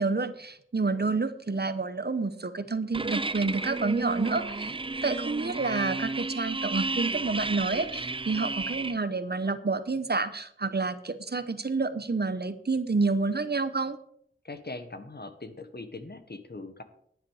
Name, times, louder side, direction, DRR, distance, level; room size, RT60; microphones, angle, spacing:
voice 1, 0.0-4.8 5.0-14.0, right 3 dB, 50° right, 12 dB, 0.9 m, -29 dB
sound 1, 2.9-8.9, right 3 dB, 25° right, 0.5 m, -32 dB
voice 2, 14.4-16.8, left 3 dB, 50° left, 9 dB, 1.4 m, -41 dB
11.0 x 9.6 x 4.9 m, 0.66 s
wide cardioid pair, 40°, 21 cm